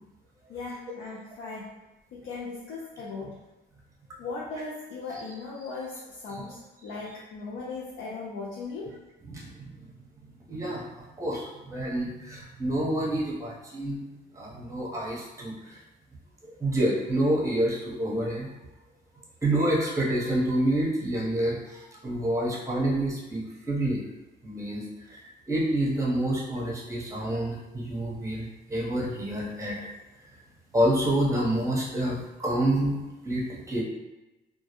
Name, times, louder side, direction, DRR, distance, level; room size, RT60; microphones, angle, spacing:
voice 1, 0.5-1.7 2.1-3.4 4.2-8.9, left 3 dB, 80° left, -5 dB, 0.4 m, -38 dB
voice 2, 9.3-9.7 10.5-10.8 11.2-14.0 14.4-15.5 16.4-18.5 19.4-24.0 24.4-24.8 25.1-25.2 25.5-29.8 30.7-32.9 33.2-33.8, right 1 dB, 15° right, -4 dB, 0.7 m, -28 dB
2.2 x 2.0 x 2.8 m, 1.1 s
cardioid pair, 90°, 20 cm